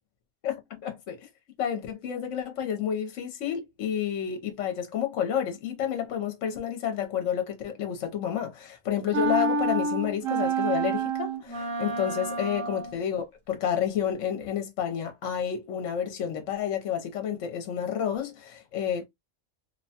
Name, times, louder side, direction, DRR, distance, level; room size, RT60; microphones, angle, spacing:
voice 1, 0.4-1.3 1.6-19.0, left 9 dB, 70° left, 1.0 m, -30 dB
sound 1, 9.1-13.0, right 3 dB, 80° right, 1.2 m, -28 dB
2.9 x 2.1 x 2.7 m
omnidirectional pair, 1.4 m